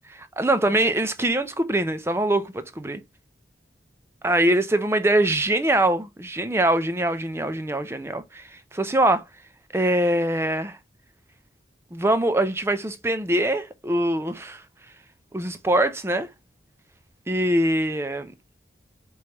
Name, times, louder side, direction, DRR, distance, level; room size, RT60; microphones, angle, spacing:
voice 1, 0.1-3.0 4.2-9.2 9.7-10.8 11.9-14.6 15.3-16.3 17.3-18.3, right 1 dB, 15° right, 0.4 m, -23 dB
4.9 x 3.1 x 2.9 m
head